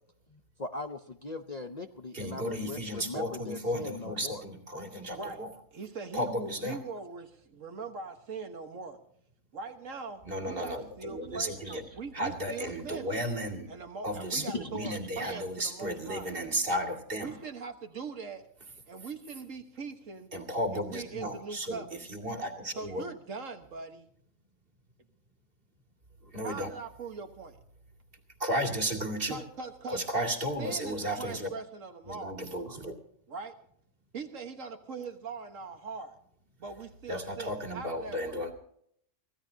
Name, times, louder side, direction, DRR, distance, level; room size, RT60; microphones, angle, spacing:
voice 1, 0.3-4.4 11.6-11.8 14.4-15.4, left 3 dB, 40° left, 7 dB, 0.7 m, -40 dB
voice 2, 2.1-5.5 6.1-6.8 10.2-11.8 12.1-13.7 14.0-17.4 20.3-23.0 26.2-26.7 28.4-29.4 29.9-31.5 32.1-32.9 37.1-38.5, equal, 45° right, 4 dB, 2.5 m, -34 dB
voice 3, 5.7-9.0 9.5-13.2 13.7-16.3 17.2-18.5 18.9-20.3 20.7-22.1 22.7-24.1 26.4-27.6 29.3-30.0 30.6-32.3 33.3-33.6 34.1-36.2 36.6-38.4, right 4 dB, 70° right, 6 dB, 1.7 m, -41 dB
24.5 x 16.0 x 2.8 m, 0.68 s
omnidirectional pair, 1.4 m